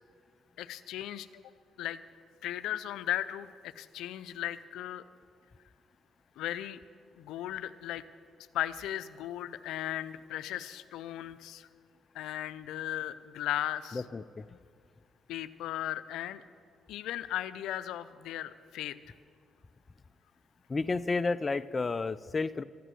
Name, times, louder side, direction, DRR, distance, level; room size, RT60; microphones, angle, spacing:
voice 1, 0.6-1.4 1.8-2.0 2.4-5.0 6.4-6.8 7.2-8.0 8.5-11.7 12.1-14.0 15.3-16.4 16.9-19.0, left 12 dB, 90° left, 12 dB, 0.5 m, -36 dB
voice 2, 13.9-14.5 20.7-22.6, left 3 dB, 30° left, 13 dB, 0.4 m, -31 dB
14.0 x 9.3 x 7.8 m, 2.2 s
cardioid pair, 90°, 0 cm